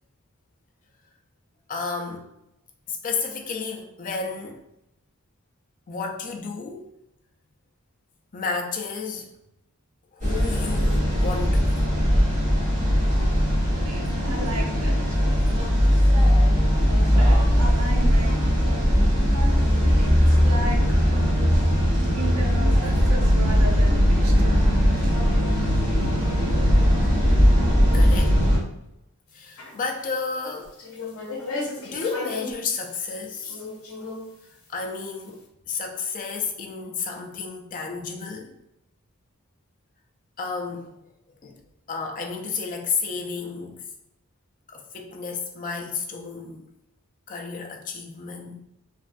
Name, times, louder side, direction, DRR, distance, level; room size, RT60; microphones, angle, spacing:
voice 1, 1.7-2.3 2.9-4.6 5.9-6.8 8.3-9.3 10.1-11.8 27.9-28.4 29.3-30.7 31.8-33.6 34.7-35.4 35.7-38.5 40.4-40.9 41.4-41.6 41.9-43.8 44.7-46.7 47.3-48.6, left 5 dB, 40° left, 2 dB, 0.4 m, -32 dB
sound 1, 10.2-28.6, equal, 35° right, 1.1 m, -19 dB
voice 2, 13.8-15.2 16.8-19.0 19.3-24.8, right 1 dB, 75° right, 0 dB, 0.7 m, -36 dB
sound 2, 29.4-30.0 30.6-33.0 33.4-34.3, left 2 dB, 70° left, 0.7 m, -34 dB
3.2 x 2.3 x 2.5 m, 0.86 s
head